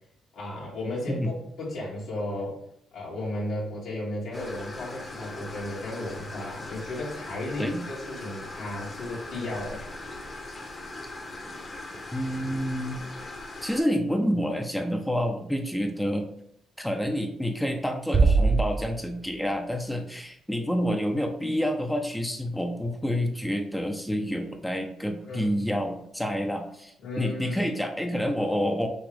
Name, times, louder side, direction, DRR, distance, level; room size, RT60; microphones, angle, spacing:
voice 1, 0.3-2.6 2.9-9.8 25.2-25.5 27.0-27.7, left 1 dB, 75° left, -7 dB, 1.8 m, -34 dB
sound 1, 4.3-13.8, left 2 dB, 30° left, 0.9 m, -40 dB
voice 2, 12.1-13.0 13.6-16.2 16.8-28.9, equal, 5° left, 4 dB, 0.6 m, -28 dB
Bass drum, 18.1-19.6, right 4 dB, 40° right, 0.4 m, -23 dB
6.0 x 2.4 x 3.4 m, 0.72 s
cardioid pair, 90°, 0 cm